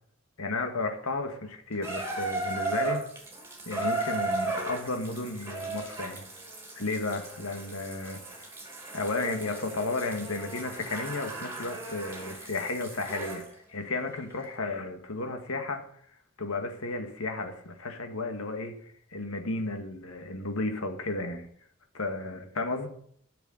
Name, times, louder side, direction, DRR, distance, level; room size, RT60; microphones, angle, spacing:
voice 1, 0.4-3.0 3.7-6.2 6.7-8.2 8.9-13.4 13.7-15.8 16.4-18.8 19.1-21.5 21.9-22.9, left 2 dB, 80° left, 5 dB, 1.8 m, -33 dB
Water tap faucet / Bathtub (filling or washing), 1.8-13.5 14.4-14.5, right 2 dB, 10° right, 2.5 m, -36 dB
12.5 x 6.9 x 6.5 m, 0.63 s
head